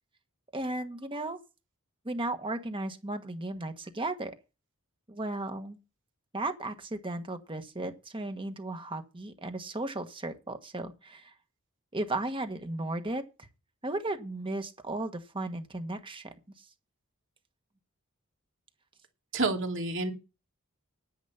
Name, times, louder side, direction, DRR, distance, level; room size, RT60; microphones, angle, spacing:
voice 1, 0.5-1.4 2.0-4.3 5.1-5.8 6.3-11.3 11.9-13.2 13.8-16.3, right 2 dB, 25° right, 1.4 m, -35 dB
voice 2, 19.3-20.1, right 3 dB, 60° right, 2.8 m, -29 dB
10.0 x 10.0 x 5.8 m
head